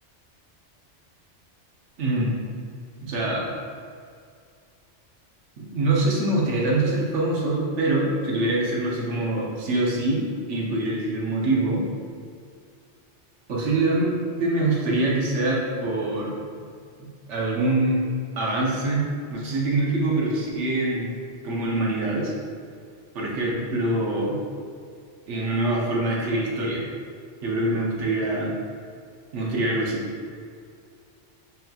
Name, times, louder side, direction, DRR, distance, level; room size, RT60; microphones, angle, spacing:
voice 1, 2.0-2.4 3.0-3.5 5.6-11.9 13.5-16.6 17.3-18.0 18.4-21.2 21.4-22.3 23.1-24.4 25.3-26.8 27.4-28.5 29.3-30.1, right 2 dB, 85° right, -3 dB, 1.1 m, -24 dB
5.4 x 2.8 x 2.3 m, 2.2 s
omnidirectional pair, 1.2 m